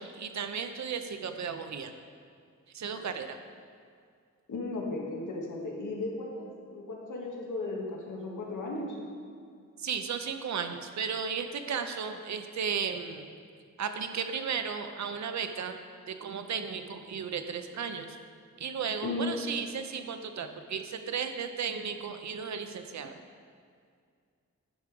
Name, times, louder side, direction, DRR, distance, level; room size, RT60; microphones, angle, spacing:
voice 1, 0.0-1.9 2.7-3.4 9.8-13.3 13.8-15.8 16.1-18.2 18.6-23.2, right 6 dB, 65° right, 7 dB, 0.7 m, -35 dB
voice 2, 4.5-9.0 19.0-19.3, left 2 dB, 85° left, -2 dB, 1.6 m, -35 dB
11.0 x 5.3 x 4.8 m, 2.2 s
wide cardioid pair, 155°, 30 cm